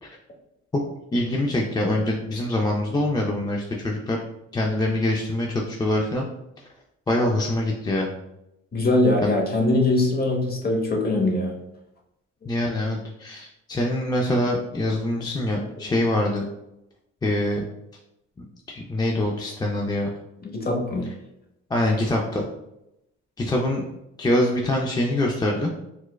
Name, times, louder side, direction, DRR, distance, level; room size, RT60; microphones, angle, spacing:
voice 1, 1.1-4.2 4.5-6.3 7.1-8.1 9.2-9.3 12.5-16.5 17.2-17.6 18.7-20.1 21.7-22.5 23.4-23.8 24.2-25.7, left 1 dB, 15° left, -1 dB, 0.3 m, -24 dB
voice 2, 8.7-11.5 20.4-21.1, left 2 dB, 30° left, 0 dB, 0.9 m, -22 dB
4.5 x 2.1 x 2.2 m, 0.86 s
cardioid pair, 90°, 30 cm